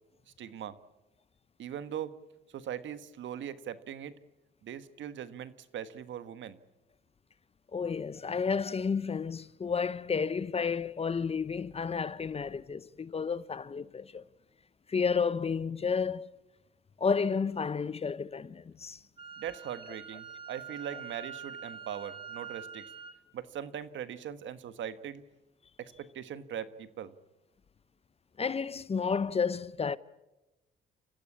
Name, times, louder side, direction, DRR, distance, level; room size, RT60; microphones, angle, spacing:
voice 1, 0.4-0.8 1.6-2.2 2.5-4.1 4.6-6.6 19.4-22.9 23.3-25.2 25.8-27.1, right 9 dB, 70° right, 1.4 m, -40 dB
voice 2, 7.7-14.2 14.9-16.3 17.0-19.0 28.4-30.0, left 5 dB, 30° left, 0.7 m, -31 dB
Wind instrument woodwind instrument, 19.2-23.2, right 7 dB, 25° right, 3.0 m, -45 dB
29.5 x 15.0 x 8.5 m
cardioid pair, 90°, 20 cm